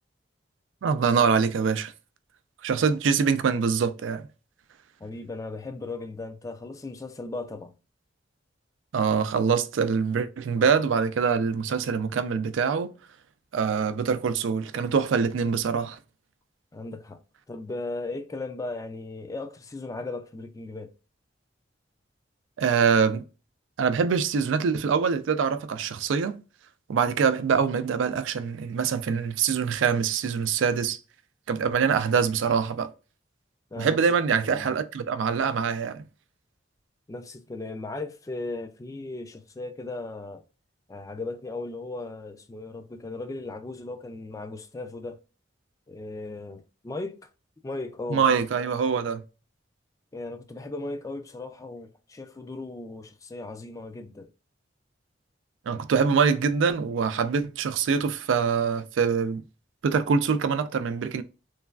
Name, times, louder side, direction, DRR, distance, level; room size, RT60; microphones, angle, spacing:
voice 1, 0.8-1.9 2.6-4.2 8.9-12.9 13.5-16.0 22.6-23.2 23.8-26.4 26.9-31.0 31.5-32.9 33.8-36.0 48.1-49.2 55.7-59.4 59.8-61.2, right 6 dB, 90° right, 0.4 m, -24 dB
voice 2, 5.0-7.7 16.7-17.2 17.5-20.9 33.7-34.0 34.3-34.8 37.1-40.4 40.9-45.2 45.9-47.3 47.6-48.2 50.1-54.3, left 2 dB, 20° left, 0.3 m, -37 dB
3.2 x 2.3 x 2.3 m
head